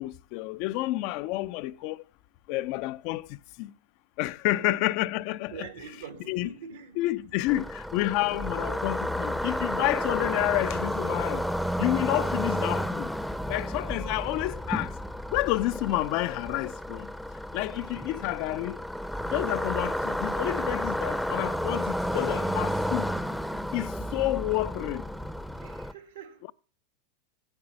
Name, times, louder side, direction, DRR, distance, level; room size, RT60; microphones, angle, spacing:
voice 1, 0.0-2.0 2.5-3.7 4.2-5.7 6.3-6.5 7.0-11.5 11.8-13.1 13.5-14.9 15.3-17.1 17.5-18.8 19.2-23.1 23.7-25.1, left 17 dB, 55° left, 0.4 m, -29 dB
voice 2, 5.5-7.0 25.6-26.4, right 6 dB, 80° right, 1.8 m, -43 dB
sound 1, 7.5-25.9, equal, ahead, 0.6 m, -31 dB
8.9 x 8.6 x 5.8 m
hypercardioid pair, 95°, 0 cm